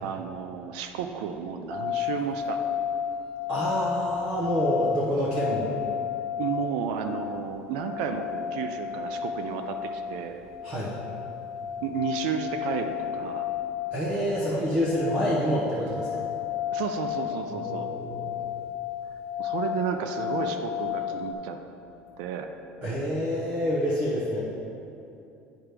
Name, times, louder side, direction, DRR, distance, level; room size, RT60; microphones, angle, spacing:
voice 1, 0.0-2.6 6.4-10.4 11.8-13.5 16.7-17.9 19.4-21.6 22.2-22.5, right 7 dB, 85° right, 6 dB, 0.5 m, -32 dB
sound 1, 1.7-21.3, left 8 dB, 10° left, 0.4 m, -33 dB
voice 2, 3.5-5.7 10.6-10.9 13.9-16.2 17.6-18.2 22.8-24.4, equal, 25° right, -6 dB, 0.8 m, -27 dB
9.1 x 5.9 x 3.4 m, 2.7 s
cardioid pair, 175°, 4 cm